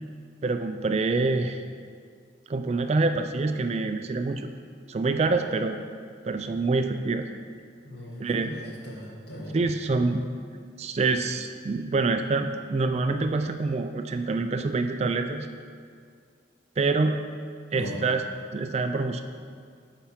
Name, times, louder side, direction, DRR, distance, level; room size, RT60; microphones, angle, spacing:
voice 1, 0.4-1.6 2.5-4.5 4.9-5.8 6.3-7.3 8.2-8.5 9.5-10.3 10.8-15.5 16.8-17.2 17.7-18.2 18.5-19.2, right 3 dB, 35° right, 8 dB, 0.3 m, -26 dB
voice 2, 7.8-9.6 17.7-18.0, equal, 60° left, -3 dB, 1.6 m, -38 dB
8.4 x 4.5 x 5.8 m, 2.2 s
head